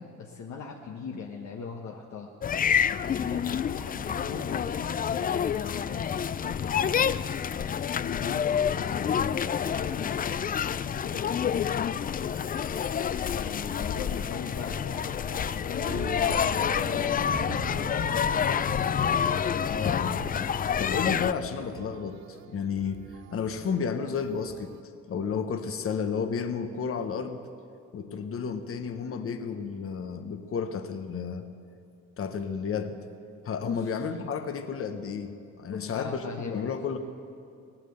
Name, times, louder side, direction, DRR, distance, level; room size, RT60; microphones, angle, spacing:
voice 1, 0.0-2.3 2.9-12.4 13.3-18.7 33.6-33.9 35.7-36.6, left 5 dB, 65° left, 0 dB, 1.3 m, -40 dB
sound 1, 2.4-21.3, left 8 dB, 30° left, 0.4 m, -28 dB
sound 2, 15.8-24.8, right 13 dB, 65° right, 0.5 m, -44 dB
voice 2, 19.6-20.3 20.8-23.0 23.3-24.8 25.1-27.4 27.9-31.5 32.2-33.0 33.4-37.0, left 6 dB, 45° left, 8 dB, 1.0 m, -32 dB
17.5 x 9.0 x 7.8 m, 2.5 s
cardioid pair, 90°, 30 cm